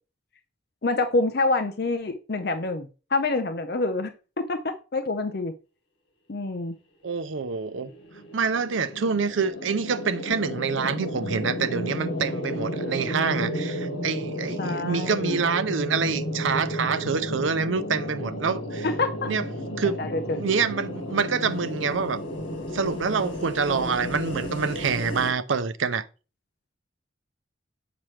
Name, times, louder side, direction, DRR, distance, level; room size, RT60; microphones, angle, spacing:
voice 1, 0.8-4.1 4.4-5.5 6.3-6.7 14.6-15.4 18.8-19.3 20.0-20.4, left 3 dB, 55° left, 0.6 m, -27 dB
voice 2, 7.0-7.9 8.3-18.9 19.3-19.4 19.8-20.0 20.4-22.2 22.7-26.1, right 5 dB, 90° right, 0.6 m, -26 dB
sound 1, 7.5-25.3, equal, 80° left, 1.9 m, -32 dB
7.4 x 5.9 x 3.2 m
head